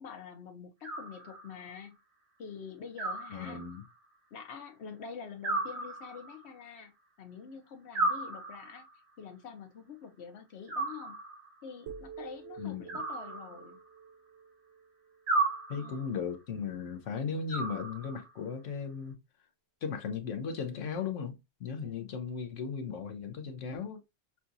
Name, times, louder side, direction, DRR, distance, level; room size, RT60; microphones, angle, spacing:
voice 1, 0.0-2.0 2.4-3.6 4.3-6.9 7.2-8.8 9.2-11.1 11.6-13.8 15.8-16.2 21.8-22.1, left 6 dB, 60° left, 1.1 m, -46 dB
Animal, 0.8-1.7 3.0-4.0 5.4-6.5 7.9-9.0 10.7-11.6 12.9-14.0 15.3-16.2 17.5-18.4, right 2 dB, 45° right, 1.3 m, -35 dB
voice 2, 3.3-3.8 12.6-12.8 15.7-19.2 19.8-24.0, left 6 dB, 85° left, 1.1 m, -36 dB
sound 1, 11.9-15.9, right 6 dB, 75° right, 0.9 m, -49 dB
5.8 x 2.4 x 2.6 m
omnidirectional pair, 1.3 m